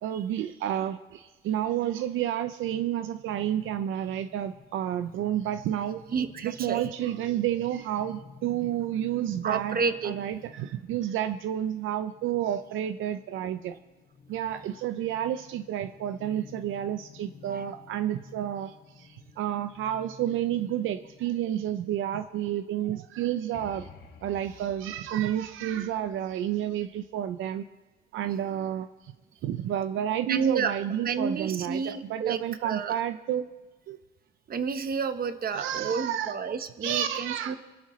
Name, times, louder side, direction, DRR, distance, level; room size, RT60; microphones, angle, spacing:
voice 1, 0.0-6.0 6.4-9.8 10.0-13.7 14.3-23.9 24.2-27.6 28.1-29.1 29.4-33.5 33.9-34.0 35.5-36.4 36.8-37.5, right 11 dB, 85° right, 10 dB, 0.5 m, -30 dB
sound 1, 3.3-21.3, left 5 dB, 50° left, 2.9 m, -53 dB
voice 2, 6.1-6.8 9.4-10.1 17.5-17.6 30.3-30.8 31.0-33.0 34.5-37.6, right 5 dB, 50° right, 9 dB, 1.1 m, -30 dB
sound 2, 23.5-27.2, left 5 dB, 75° left, 1.9 m, -51 dB
25.5 x 11.5 x 3.2 m, 1.2 s
cardioid pair, 90°, 20 cm